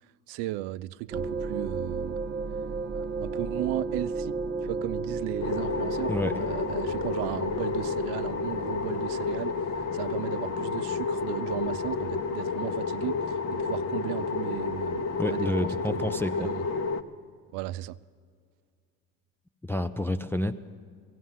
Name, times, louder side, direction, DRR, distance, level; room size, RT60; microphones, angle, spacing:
voice 1, 0.3-2.2 2.9-16.6 17.5-18.0, right 17 dB, 65° right, 0.5 m, -36 dB
sound 1, 1.1-10.2, right 4 dB, 25° right, 0.7 m, -34 dB
sound 2, 5.4-17.0, left 4 dB, 35° left, 0.8 m, -30 dB
voice 2, 15.2-16.5 19.6-20.5, left 1 dB, 5° left, 0.3 m, -29 dB
17.0 x 14.5 x 5.6 m
supercardioid pair, 80°, 44 cm